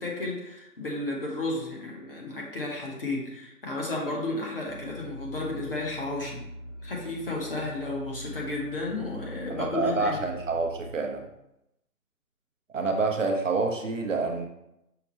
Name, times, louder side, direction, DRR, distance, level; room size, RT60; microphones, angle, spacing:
voice 1, 0.0-6.4 6.8-10.2, left 2 dB, 35° left, -2 dB, 0.9 m, -33 dB
sound 1, 4.7-10.9, equal, 10° right, 0.9 m, -42 dB
voice 2, 9.5-11.3 12.7-14.5, right 3 dB, 55° right, 3 dB, 0.6 m, -27 dB
5.7 x 2.2 x 4.1 m, 0.84 s
hypercardioid pair, 165°, 46 cm